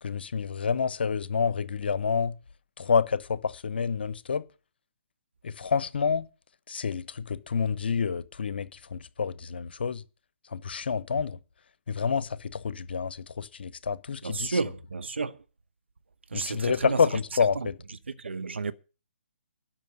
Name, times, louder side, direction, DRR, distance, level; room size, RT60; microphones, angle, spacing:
voice 1, 0.0-2.3 2.8-4.4 5.4-6.3 6.7-10.0 10.5-11.4 11.9-14.6 16.3-17.8, left 6 dB, 55° left, 0.9 m, -28 dB
voice 2, 14.2-15.3 16.3-17.0 18.2-18.7, right 4 dB, 70° right, 0.9 m, -31 dB
12.5 x 6.2 x 9.3 m
figure-of-eight pair, 135°, 6 cm